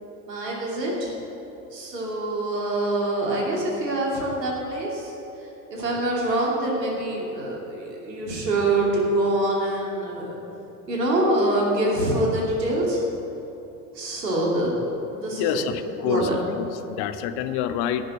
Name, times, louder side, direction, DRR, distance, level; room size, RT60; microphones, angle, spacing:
voice 1, 0.3-1.1 1.7-5.1 5.7-10.4 10.9-13.0 13.9-14.8 15.1-15.6 16.0-16.3, right 1 dB, 85° right, -3 dB, 2.7 m, -25 dB
voice 2, 15.2-18.1, left 9 dB, 50° left, 11 dB, 0.8 m, -28 dB
11.0 x 6.6 x 8.6 m, 2.9 s
hypercardioid pair, 75°, 48 cm